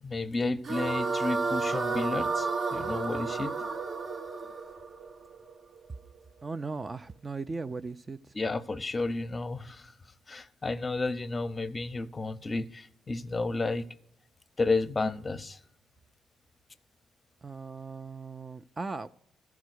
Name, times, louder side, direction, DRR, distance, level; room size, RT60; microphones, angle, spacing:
voice 1, 0.0-3.7 8.3-9.9 10.3-13.8 14.6-15.6, left 3 dB, 25° left, 0.6 m, -32 dB
sound 1, 0.6-5.9, right 4 dB, 50° right, 0.7 m, -31 dB
voice 2, 6.4-8.2 17.4-19.1, right 4 dB, 30° right, 0.3 m, -37 dB
14.0 x 4.7 x 6.3 m
cardioid pair, 90°, 0 cm